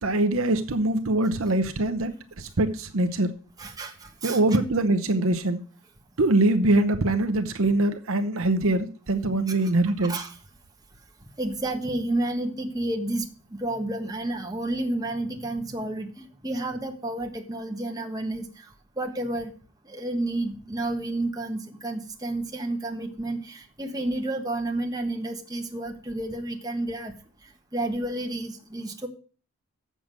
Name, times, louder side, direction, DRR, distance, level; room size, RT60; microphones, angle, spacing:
voice 1, 0.0-3.3 4.2-5.6 6.2-10.2, right 2 dB, 65° right, 0.8 m, -23 dB
voice 2, 3.6-4.4 10.1-10.3 11.4-18.7 19.0-19.5 19.8-27.1 27.7-29.1, right 2 dB, 15° right, 1.3 m, -30 dB
7.4 x 6.8 x 7.5 m
head